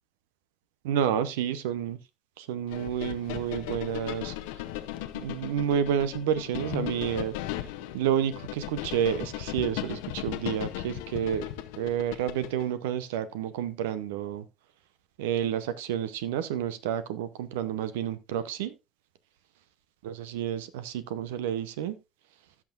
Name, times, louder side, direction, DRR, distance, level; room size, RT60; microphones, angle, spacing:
voice 1, 0.8-2.0 2.4-4.3 5.1-7.3 7.9-11.4 11.8-14.4 15.2-18.7 20.0-21.9, right 9 dB, 85° right, 0.8 m, -30 dB
sound 1, 2.7-12.7, left 14 dB, 80° left, 0.8 m, -37 dB
16.0 x 6.0 x 2.5 m
hypercardioid pair, 55°, 0 cm